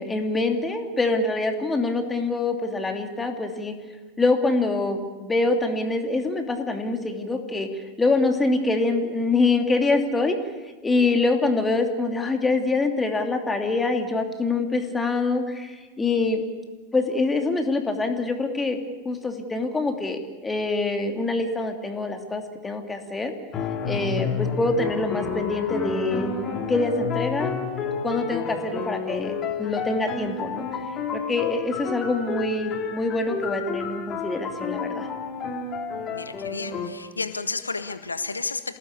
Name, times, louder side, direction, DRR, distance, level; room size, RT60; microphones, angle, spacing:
voice 1, 0.0-3.7 4.2-7.7 8.0-10.4 10.8-16.4 16.9-18.8 19.0-23.3 23.8-27.6 28.0-30.7 31.1-35.1, left 3 dB, 10° left, 4 dB, 2.9 m, -25 dB
sound 1, 23.5-36.9, left 5 dB, 30° left, 3.2 m, -30 dB
voice 2, 36.1-38.8, left 4 dB, 80° left, 11 dB, 1.5 m, -31 dB
27.5 x 18.5 x 8.4 m, 1.2 s
figure-of-eight pair, 90°, 0 cm